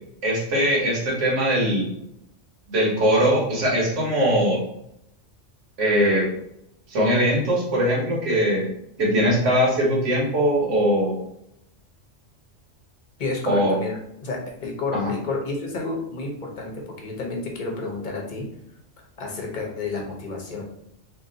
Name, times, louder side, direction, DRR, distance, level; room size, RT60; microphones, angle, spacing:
voice 1, 0.2-1.9 2.7-4.6 5.8-6.3 6.9-8.7 9.0-11.1 13.5-13.8 14.9-15.1, equal, 70° right, -4 dB, 1.4 m, -21 dB
voice 2, 13.2-18.5 19.2-20.6, left 3 dB, 45° left, 0 dB, 0.8 m, -30 dB
2.9 x 2.6 x 3.8 m, 0.76 s
omnidirectional pair, 1.3 m